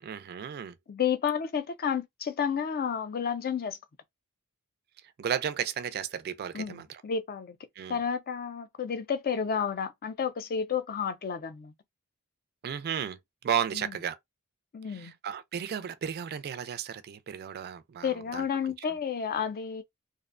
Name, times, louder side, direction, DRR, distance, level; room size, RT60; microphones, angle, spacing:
voice 1, 0.0-0.8 5.2-6.8 7.8-8.0 12.6-13.2 13.4-14.2 14.9-18.4, right 8 dB, 45° right, 0.3 m, -33 dB
voice 2, 0.9-3.8 6.5-7.6 7.9-11.7 13.7-13.9 14.7-15.1 18.0-19.8, left 7 dB, 45° left, 0.4 m, -31 dB
2.6 x 2.0 x 2.4 m
head